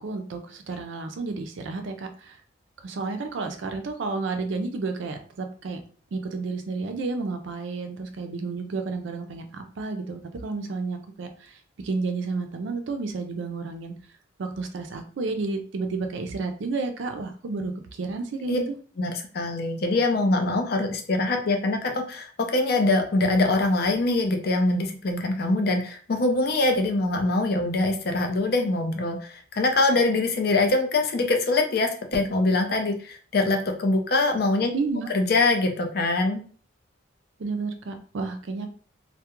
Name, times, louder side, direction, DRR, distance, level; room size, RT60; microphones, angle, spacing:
voice 1, 0.0-2.4 2.8-5.8 6.1-13.9 14.4-18.6 34.7-35.1 37.4-38.7, right 3 dB, 70° right, 6 dB, 0.4 m, -31 dB
voice 2, 19.0-34.7 35.1-36.4, left 2 dB, 50° left, 4 dB, 0.4 m, -23 dB
2.3 x 2.1 x 2.9 m, 0.43 s
head